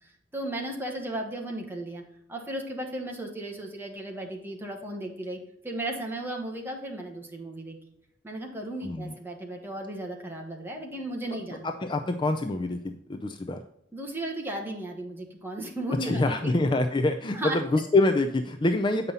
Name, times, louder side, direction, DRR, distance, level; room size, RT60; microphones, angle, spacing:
voice 1, 0.3-2.0 2.3-5.4 5.6-7.8 8.2-11.7 13.9-16.5 17.3-17.6, right 1 dB, 10° right, 1 dB, 1.4 m, -35 dB
voice 2, 8.8-9.1 11.6-13.6 16.0-19.1, left 2 dB, 25° left, 6 dB, 0.4 m, -26 dB
8.3 x 5.5 x 4.0 m, 0.77 s
head